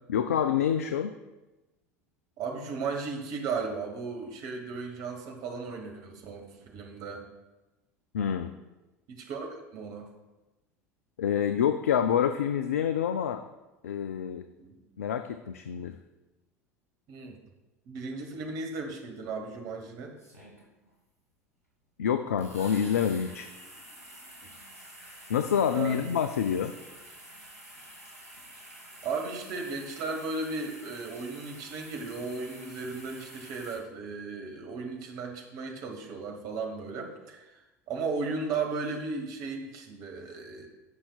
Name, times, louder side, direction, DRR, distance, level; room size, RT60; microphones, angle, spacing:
voice 1, 0.1-1.1 8.1-8.5 11.2-13.4 13.8-14.5 15.0-16.0 22.0-23.5 25.3-26.7, left 8 dB, 70° left, 9 dB, 0.4 m, -27 dB
voice 2, 2.4-7.2 9.1-10.1 14.6-14.8 17.1-17.4 17.9-20.1 24.4-24.6 25.7-26.0 29.0-37.5 37.9-40.7, right 4 dB, 50° right, 3 dB, 1.4 m, -35 dB
sound 1, 19.3-19.4 20.2-20.9 22.4-33.8, right 1 dB, 90° left, 2.3 m, -49 dB
15.5 x 5.6 x 2.4 m, 1.1 s
figure-of-eight pair, 75°, 8 cm